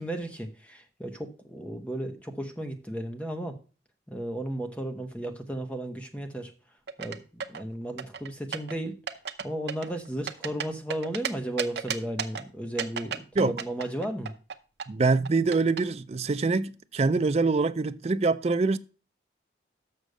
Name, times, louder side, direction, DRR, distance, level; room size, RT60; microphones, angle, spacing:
voice 1, 0.0-3.6 4.1-6.5 7.0-7.2 7.5-9.0 9.4-14.3, right 1 dB, 5° left, 1.0 m, -34 dB
sound 1, 6.9-7.6 8.0-8.7 9.1-9.4 9.7-11.3 11.6-12.4 12.8-14.5 14.8-15.8, right 7 dB, 65° right, 0.7 m, -33 dB
voice 2, 14.9-18.8, right 3 dB, 35° right, 0.4 m, -24 dB
6.5 x 6.2 x 6.5 m
head